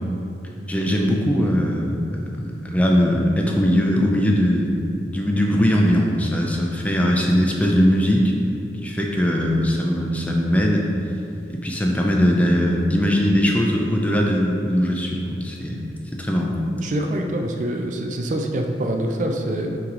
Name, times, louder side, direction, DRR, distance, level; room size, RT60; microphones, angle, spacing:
voice 1, 0.7-8.3 8.8-10.9 11.5-15.9 16.1-16.6, equal, 10° left, -1 dB, 0.5 m, -20 dB
voice 2, 16.8-19.8, right 1 dB, 45° right, 3 dB, 0.4 m, -25 dB
5.8 x 4.9 x 3.9 m, 2.7 s
head